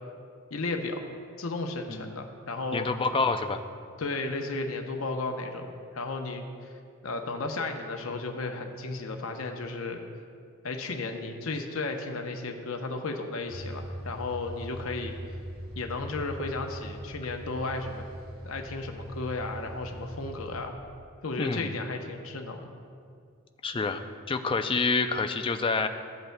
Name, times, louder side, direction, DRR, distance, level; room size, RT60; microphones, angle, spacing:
voice 1, 0.5-1.0 1.4-2.9 4.0-6.7 7.0-10.0 10.6-15.1 15.8-18.0 18.4-20.7 21.2-22.7, left 3 dB, 70° left, 4 dB, 0.7 m, -34 dB
voice 2, 2.7-3.6 21.4-21.8 23.6-24.0 24.3-25.9, left 4 dB, 25° left, 7 dB, 0.3 m, -27 dB
sound 1, 13.5-20.6, equal, 65° right, 1.1 m, -41 dB
14.5 x 7.9 x 2.2 m, 2.3 s
head